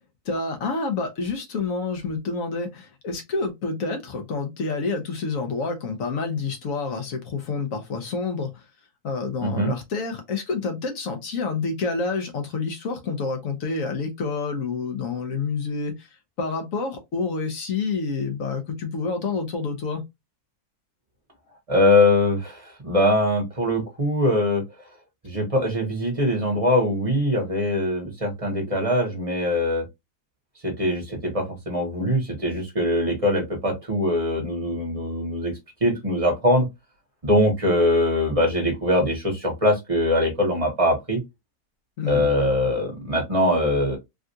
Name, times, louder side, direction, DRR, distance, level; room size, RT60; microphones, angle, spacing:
voice 1, 0.2-8.6 9.0-16.1 16.4-20.0 42.0-42.3, left 4 dB, 60° left, 1.2 m, -28 dB
voice 2, 9.4-9.7 21.7-24.6 25.2-29.8 30.6-35.5 35.8-36.7 37.2-41.2 42.1-44.0, left 1 dB, 25° right, 1.1 m, -22 dB
3.5 x 2.5 x 2.7 m
omnidirectional pair, 1.6 m